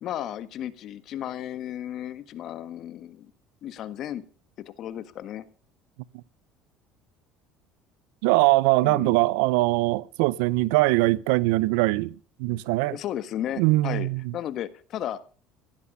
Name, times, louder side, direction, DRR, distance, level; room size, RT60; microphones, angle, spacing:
voice 1, 0.0-3.3 3.6-4.2 4.6-5.4 8.8-9.2 12.9-15.2, left 11 dB, 55° left, 1.5 m, -34 dB
voice 2, 8.2-13.0 13.6-14.3, right 20 dB, 85° right, 0.6 m, -22 dB
16.5 x 11.5 x 5.5 m
supercardioid pair, 105°, 0 cm